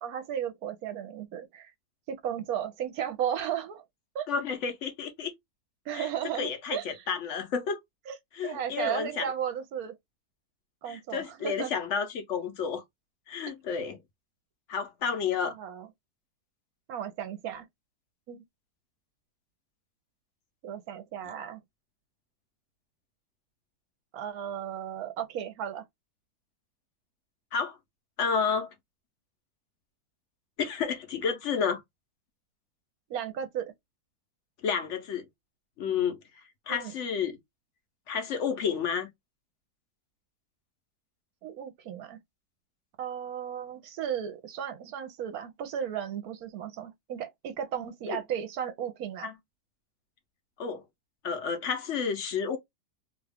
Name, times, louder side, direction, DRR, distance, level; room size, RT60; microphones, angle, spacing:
voice 1, 0.0-1.7 2.1-3.8 4.1-4.3 5.9-7.0 8.1-8.2 8.4-9.9 10.8-11.7 15.4-15.9 16.9-17.7 18.3-18.4 20.6-21.6 24.1-25.8 33.1-33.7 36.7-36.9 41.4-42.2 43.0-49.3, right 9 dB, 75° right, 1.1 m, -35 dB
voice 2, 4.3-5.3 5.9-6.1 6.4-7.8 8.3-9.3 10.9-12.8 13.3-14.0 14.7-15.6 27.5-27.8 28.2-28.7 30.6-31.8 34.6-35.3 35.8-36.2 36.7-37.4 38.1-39.1 48.1-48.2 49.2-49.3 50.6-50.8 51.2-52.6, left 6 dB, 60° left, 0.9 m, -30 dB
2.9 x 2.3 x 3.3 m
omnidirectional pair, 1.7 m